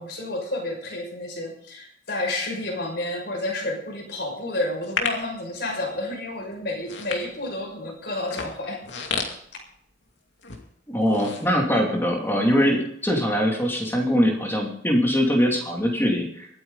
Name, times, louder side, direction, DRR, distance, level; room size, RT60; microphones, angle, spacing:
voice 1, 0.0-8.8, left 2 dB, 60° left, 0 dB, 6.1 m, -30 dB
sound 1, 4.8-5.3 6.0-6.2 6.7-7.7 8.2-10.1 10.4-10.6 11.0-12.1 12.5-12.6, left 5 dB, 80° left, 2.5 m, -31 dB
voice 2, 10.9-16.5, equal, 10° left, 0 dB, 2.7 m, -22 dB
24.0 x 9.7 x 4.0 m, 0.69 s
head